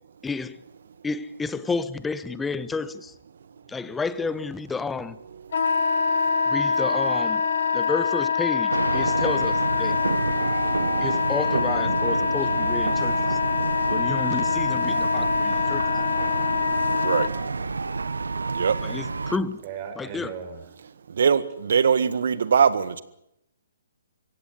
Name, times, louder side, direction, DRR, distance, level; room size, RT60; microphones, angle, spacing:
voice 1, 0.2-0.6 1.0-3.1 3.7-5.2 6.5-7.5 7.7-9.5 9.8-10.0 11.0-13.4 13.9-15.8 18.8-19.6 20.0-20.3, left 4 dB, 10° left, 16 dB, 0.9 m, -31 dB
Wind instrument woodwind instrument, 5.5-17.3, left 5 dB, 65° left, 2.2 m, -24 dB
sound 1, 8.7-19.4, right 4 dB, 85° right, 1.2 m, -29 dB
voice 2, 19.6-20.6, right 7 dB, 35° right, 7 dB, 5.1 m, -36 dB
voice 3, 21.2-23.0, right 6 dB, 65° right, 15 dB, 1.7 m, -21 dB
23.5 x 16.5 x 9.8 m, 0.81 s
hypercardioid pair, 140°, 0 cm